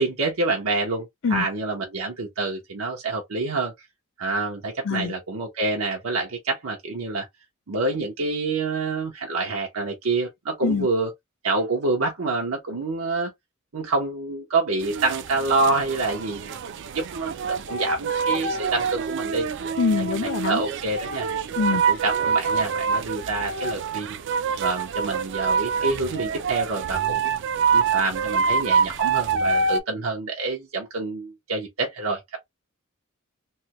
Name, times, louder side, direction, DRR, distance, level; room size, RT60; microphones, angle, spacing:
voice 1, 0.0-3.7 4.2-7.3 7.7-11.1 11.4-13.3 13.7-16.5 16.9-19.5 20.4-21.3 21.6-24.2 24.6-27.2 27.7-32.4, right 3 dB, 85° right, 0.8 m, -27 dB
sound 1, 14.8-29.8, right 5 dB, 60° right, 0.4 m, -26 dB
voice 2, 19.8-20.6 21.6-21.8, left 5 dB, 60° left, 0.5 m, -24 dB
3.3 x 2.1 x 2.9 m
head